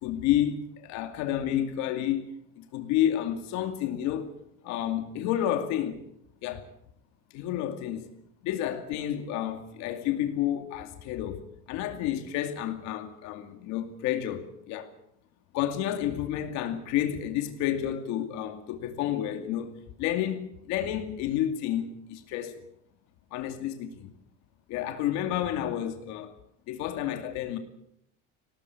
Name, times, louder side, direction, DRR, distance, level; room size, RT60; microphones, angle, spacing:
voice 1, 0.0-4.3 4.6-6.0 6.4-6.7 7.3-8.1 8.4-14.9 15.5-19.7 20.0-22.6 23.3-24.1 24.7-26.3 26.7-27.6, left 11 dB, 70° left, 2.5 m, -30 dB
20.5 x 18.0 x 8.4 m
cardioid pair, 155°, 29 cm